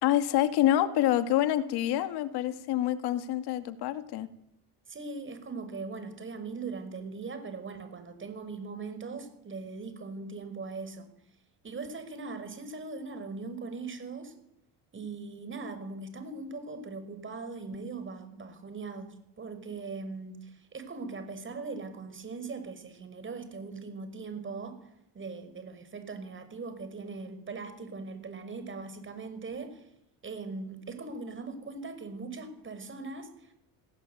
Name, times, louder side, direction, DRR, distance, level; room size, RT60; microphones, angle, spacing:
voice 1, 0.0-4.3, left 12 dB, 80° left, 10 dB, 2.3 m, -27 dB
voice 2, 4.9-11.1 11.6-14.3 14.9-24.8 25.1-29.9 30.2-33.5, right 4 dB, 30° right, 10 dB, 5.8 m, -40 dB
29.0 x 18.5 x 9.4 m, 0.80 s
cardioid pair, 115°, 38 cm